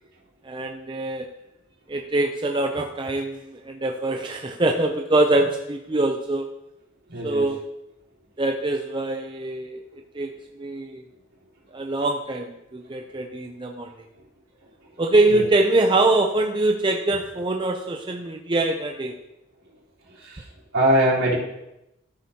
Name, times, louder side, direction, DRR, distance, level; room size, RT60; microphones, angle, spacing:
voice 1, 0.4-1.3 1.9-6.5 7.2-7.6 8.4-9.8 10.1-10.3 10.6-11.0 11.7-13.9 15.0-19.1, right 2 dB, 25° right, 3 dB, 0.5 m, -23 dB
voice 2, 7.1-7.4 15.3-15.4 20.2-20.4 20.7-21.4, right 1 dB, 75° right, -7 dB, 3.8 m, -21 dB
13.5 x 7.9 x 2.8 m, 0.89 s
head